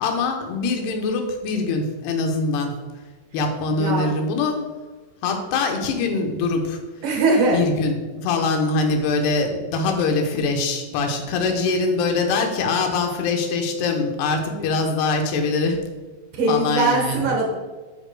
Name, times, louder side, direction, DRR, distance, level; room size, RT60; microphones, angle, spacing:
voice 1, 0.0-2.7 3.3-4.6 5.2-6.8 7.5-15.8 16.5-17.2, left 3 dB, 80° left, 3 dB, 3.0 m, -23 dB
voice 2, 3.7-4.0 7.0-7.7 14.5-14.7 16.3-17.5, right 3 dB, 60° right, 0 dB, 2.4 m, -21 dB
10.5 x 8.4 x 2.3 m, 1.3 s
omnidirectional pair, 4.6 m